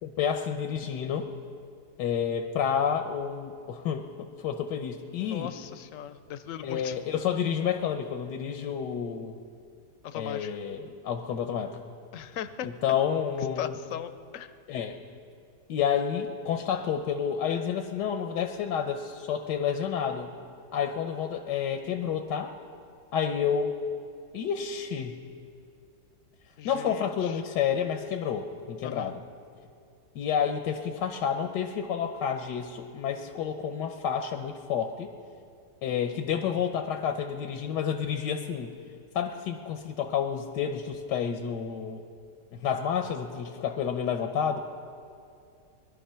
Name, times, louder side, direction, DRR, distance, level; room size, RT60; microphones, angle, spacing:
voice 1, 0.0-1.3 2.0-5.5 6.6-9.4 10.1-11.8 12.6-13.8 14.7-15.0 15.7-20.3 20.7-22.5 23.1-23.7 24.3-25.2 26.6-29.2 30.1-35.1 35.8-38.7 39.1-42.0 42.5-44.6, left 8 dB, 85° left, 5 dB, 1.4 m, -30 dB
voice 2, 5.2-6.9 10.0-10.6 12.1-12.7 13.6-14.5 26.6-27.4 28.8-29.1, left 9 dB, 60° left, 11 dB, 1.0 m, -38 dB
21.5 x 11.5 x 5.7 m, 2.4 s
omnidirectional pair, 1.8 m